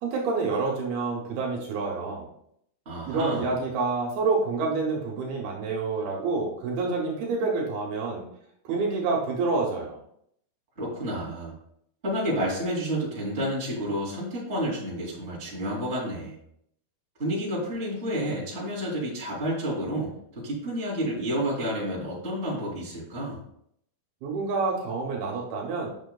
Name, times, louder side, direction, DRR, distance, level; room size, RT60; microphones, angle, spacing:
voice 1, 0.0-2.3 3.1-8.2 8.6-10.0 24.2-25.9, right 4 dB, 75° right, -1 dB, 3.0 m, -28 dB
voice 2, 2.8-3.5 10.8-11.5 12.0-16.4 17.2-23.4, equal, 20° right, -6 dB, 2.4 m, -30 dB
9.0 x 6.1 x 2.3 m, 0.71 s
omnidirectional pair, 4.5 m